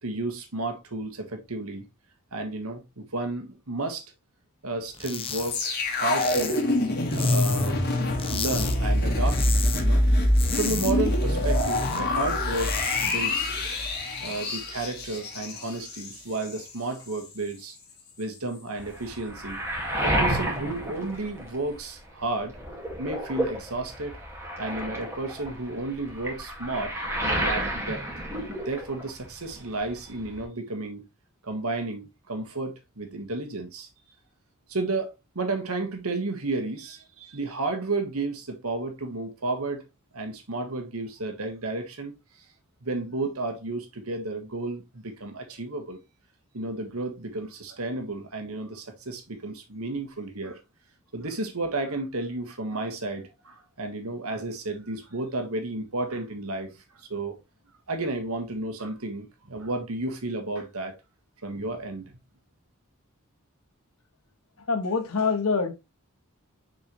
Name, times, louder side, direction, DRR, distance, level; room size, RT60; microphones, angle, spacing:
voice 1, 0.0-1.9 2.3-4.1 4.6-6.6 7.1-7.8 8.3-10.0 10.5-13.6 14.2-17.8 18.2-19.6 20.0-22.6 23.0-24.2 24.6-26.9 27.2-28.0 28.6-31.0 31.4-33.9 34.7-39.8 40.1-42.1 42.8-46.0 46.5-50.6 51.1-57.4 57.9-61.0 61.4-62.1, right 2 dB, 90° right, 1.6 m, -32 dB
sound 1, 4.9-5.5 5.8-7.8 8.2-8.8 9.1-9.8 10.1-12.0 12.4-13.2, left 7 dB, 25° left, 0.8 m, -34 dB
sound 2, 5.5-16.7 17.0-17.2, left 1 dB, 50° left, 1.9 m, -25 dB
Waves surf, 18.8-22.0 22.3-29.2 29.5-30.4, right 1 dB, 10° right, 2.1 m, -31 dB
voice 2, 64.6-65.7, left 4 dB, 85° left, 1.2 m, -25 dB
6.4 x 4.7 x 3.2 m
head